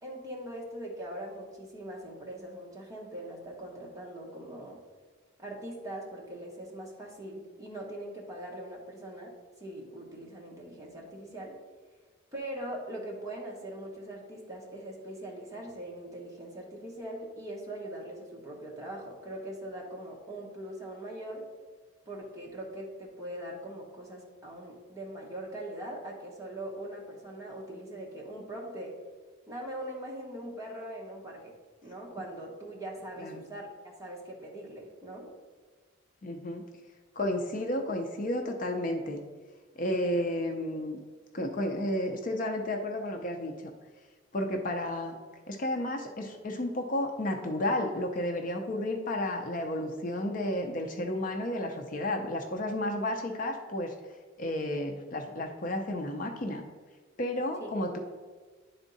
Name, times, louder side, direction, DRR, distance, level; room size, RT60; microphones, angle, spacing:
voice 1, 0.0-4.8 5.4-9.3 9.6-11.5 12.3-21.4 22.1-29.0 29.5-31.5 31.8-35.3 57.6-57.7, right 1 dB, 15° right, -3 dB, 1.2 m, -41 dB
voice 2, 36.2-36.6 37.2-39.2 39.8-41.0 41.3-43.7 44.3-45.2 45.5-53.9 54.4-56.6 57.2-58.0, left 1 dB, 40° left, 3 dB, 0.5 m, -32 dB
10.0 x 3.6 x 4.0 m, 1.4 s
head